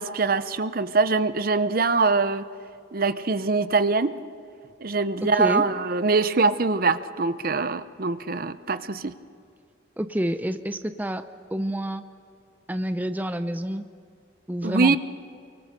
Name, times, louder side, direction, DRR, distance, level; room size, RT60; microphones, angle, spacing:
voice 1, 0.0-2.4 2.9-4.1 4.8-9.1 14.6-15.0, right 4 dB, 50° right, 13 dB, 0.7 m, -23 dB
voice 2, 5.2-5.6 10.0-11.2 11.5-12.0 12.7-13.9 14.5-15.0, equal, 10° right, 9 dB, 0.6 m, -28 dB
29.0 x 24.0 x 6.7 m, 2.4 s
head